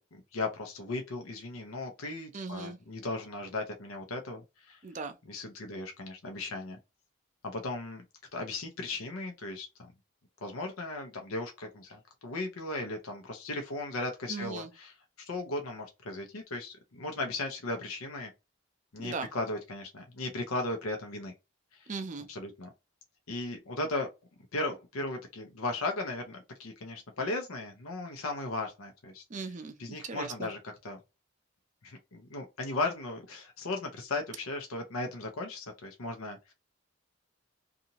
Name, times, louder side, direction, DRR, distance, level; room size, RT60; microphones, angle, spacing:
voice 1, 0.0-4.8 5.2-6.8 7.4-8.0 8.3-9.9 10.4-18.3 18.9-21.3 21.7-21.9 22.3-22.7 23.3-24.1 24.5-29.5 29.8-31.0 31.8-36.5, left 2 dB, 90° left, 0.7 m, -36 dB
voice 2, 2.3-2.8 4.8-5.2 14.3-14.7 19.0-19.3 21.9-22.3 29.3-30.5, right 4 dB, 35° right, 0.4 m, -38 dB
2.7 x 2.4 x 2.8 m
head